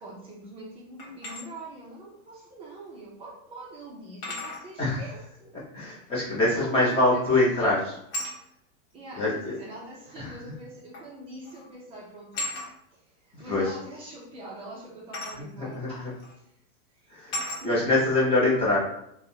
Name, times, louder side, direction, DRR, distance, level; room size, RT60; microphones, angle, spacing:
voice 1, 0.0-5.6 6.0-6.1 6.4-7.3 7.5-7.8 8.9-12.6 12.9-15.8 16.3-16.5 17.0-17.1 17.6-17.7, right 2 dB, 15° right, -4 dB, 0.5 m, -44 dB
sound 1, 1.0-1.4 3.0-3.1 4.2-4.7 6.9-7.2 8.1-8.4 9.6-9.7 10.9-11.1 11.4-11.7 12.3-12.7 15.1-15.4 16.2-16.3 17.3-17.7, left 1 dB, 45° left, 1.4 m, -34 dB
voice 2, 5.7-7.9 9.2-9.5 10.2-10.4 13.3-13.8 15.4-16.1 17.1-17.4 17.6-18.8, left 2 dB, 15° left, -6 dB, 0.8 m, -24 dB
3.4 x 2.2 x 2.8 m, 0.75 s
supercardioid pair, 150°, 44 cm